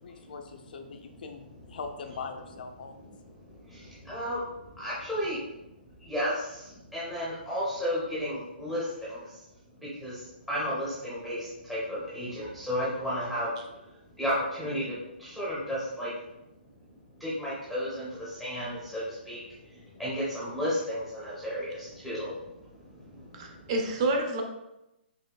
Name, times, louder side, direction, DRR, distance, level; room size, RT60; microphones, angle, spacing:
voice 1, 0.0-1.4 1.7-3.1, left 5 dB, 55° left, 5 dB, 0.5 m, -41 dB
voice 2, 3.1-5.5 6.0-9.4 9.8-13.8 14.1-16.1 17.2-23.7, equal, ahead, -8 dB, 0.8 m, -34 dB
voice 3, 23.3-24.4, right 2 dB, 30° right, 3 dB, 0.5 m, -28 dB
5.5 x 3.1 x 2.2 m, 0.91 s
hypercardioid pair, 170°, 6 cm